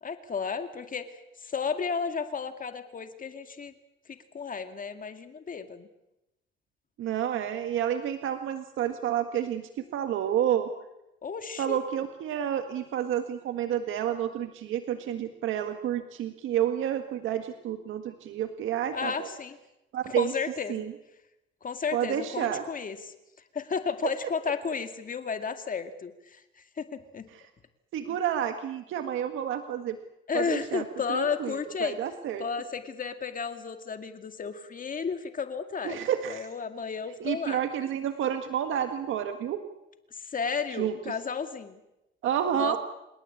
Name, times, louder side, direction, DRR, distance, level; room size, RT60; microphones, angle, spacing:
voice 1, 0.0-1.1 1.4-3.7 4.1-5.9 11.2-11.8 18.9-19.6 20.1-20.8 21.6-23.1 23.5-26.4 26.8-27.3 28.1-28.2 30.3-32.0 32.4-36.0 36.3-37.6 40.1-41.8 42.6-42.8, left 5 dB, 45° left, 8 dB, 2.2 m, -33 dB
voice 2, 7.0-9.6 9.9-10.7 11.6-19.3 19.9-20.3 20.7-20.9 21.9-22.6 27.3-27.4 27.9-30.0 30.3-32.4 35.8-36.5 37.2-39.6 40.8-41.1 42.2-42.8, right 10 dB, 80° right, 7 dB, 1.8 m, -30 dB
29.0 x 17.5 x 8.5 m, 0.92 s
cardioid pair, 90°, 20 cm